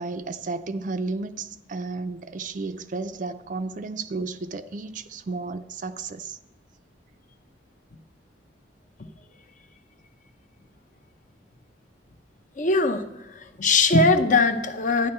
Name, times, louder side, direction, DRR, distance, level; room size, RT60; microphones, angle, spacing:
voice 1, 0.0-6.4, right 3 dB, 45° right, 0.4 m, -33 dB
voice 2, 12.6-13.1 13.6-15.1, left 3 dB, 45° left, 0.7 m, -20 dB
11.5 x 9.9 x 4.4 m
head